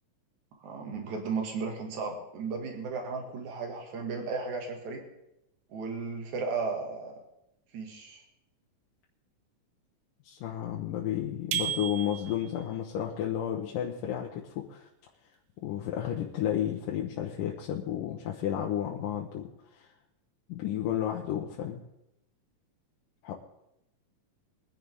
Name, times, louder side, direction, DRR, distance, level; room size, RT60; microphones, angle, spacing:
voice 1, 0.6-5.0 5.7-7.2 7.7-8.2, right 4 dB, 60° right, 2 dB, 3.2 m, -35 dB
voice 2, 10.2-14.9 15.6-19.5 19.8-19.9 20.5-21.8 23.2-23.3, left 10 dB, 75° left, -1 dB, 2.6 m, -32 dB
sound 1, 11.5-12.6, right 11 dB, 80° right, 2.5 m, -33 dB
23.0 x 10.0 x 3.6 m, 0.84 s
omnidirectional pair, 4.0 m